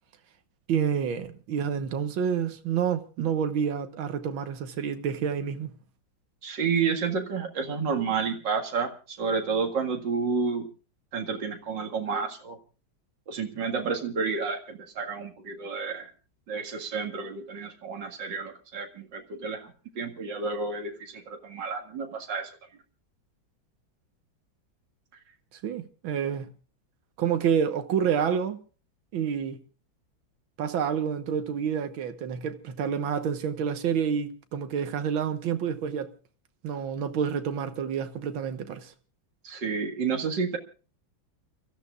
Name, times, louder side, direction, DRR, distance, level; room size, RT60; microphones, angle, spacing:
voice 1, 0.7-5.7 25.6-26.5 27.2-28.6 29.1-29.6 30.6-36.1 36.6-38.9, right 7 dB, 85° right, 2.0 m, -28 dB
voice 2, 6.4-10.7 11.1-12.6 13.3-16.1 16.5-22.5 39.4-40.6, right 5 dB, 65° right, 2.6 m, -30 dB
29.5 x 14.0 x 2.4 m
omnidirectional pair, 2.1 m